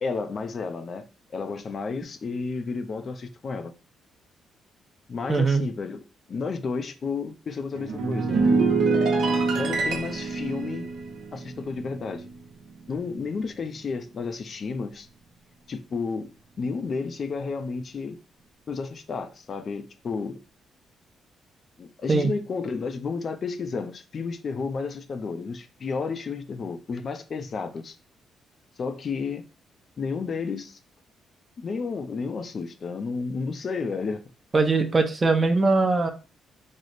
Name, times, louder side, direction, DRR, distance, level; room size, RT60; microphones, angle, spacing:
voice 1, 0.0-3.7 5.1-6.0 6.3-8.4 9.6-10.9 11.3-12.3 12.9-15.1 15.7-16.3 16.6-18.2 18.7-20.4 21.8-28.0 28.8-29.4 30.0-30.8 31.6-34.2, left 4 dB, 45° left, 0.4 m, -32 dB
voice 2, 5.3-5.6 22.1-22.3 34.5-36.1, right 3 dB, 30° right, 0.6 m, -21 dB
sound 1, 7.7-12.4 12.7-13.0, right 4 dB, 70° right, 0.8 m, -25 dB
3.2 x 2.0 x 3.9 m
cardioid pair, 90°, 0 cm